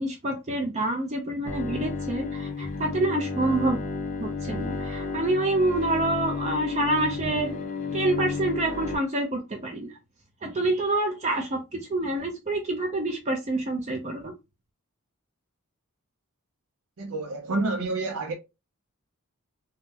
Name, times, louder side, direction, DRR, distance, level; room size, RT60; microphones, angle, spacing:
voice 1, 0.0-3.8 4.2-7.6 7.9-10.0 10.4-14.3, right 2 dB, 30° right, 0.5 m, -27 dB
Bowed string instrument, 1.5-9.0, left 4 dB, 35° left, 0.5 m, -32 dB
voice 2, 17.0-18.3, right 2 dB, 80° right, 0.5 m, -28 dB
3.6 x 2.1 x 2.8 m
head